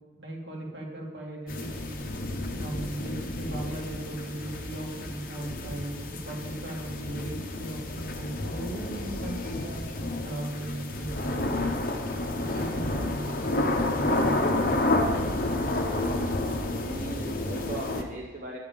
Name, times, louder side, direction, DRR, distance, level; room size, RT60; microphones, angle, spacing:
voice 1, 0.2-2.0 2.6-11.7 12.3-15.2, right 1 dB, 70° right, -2 dB, 2.3 m, -37 dB
sound 1, 1.5-18.0, left 2 dB, 45° left, 0.9 m, -30 dB
voice 2, 16.8-18.6, right 2 dB, 45° right, -2 dB, 1.0 m, -38 dB
10.5 x 8.2 x 5.3 m, 1.3 s
head